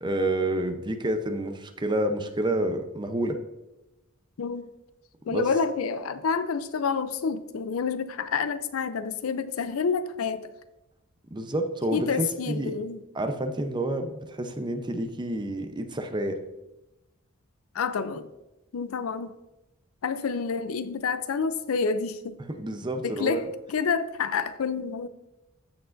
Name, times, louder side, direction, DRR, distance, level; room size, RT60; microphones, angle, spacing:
voice 1, 0.0-3.4 5.3-5.5 11.3-12.7 13.1-16.4 22.4-23.4, right 1 dB, 20° right, 0.6 m, -29 dB
voice 2, 5.3-10.5 11.9-13.0 17.7-18.3 18.7-19.3 20.0-22.3 23.0-23.4 23.7-25.1, left 5 dB, 85° left, 0.5 m, -28 dB
14.0 x 4.7 x 2.5 m
head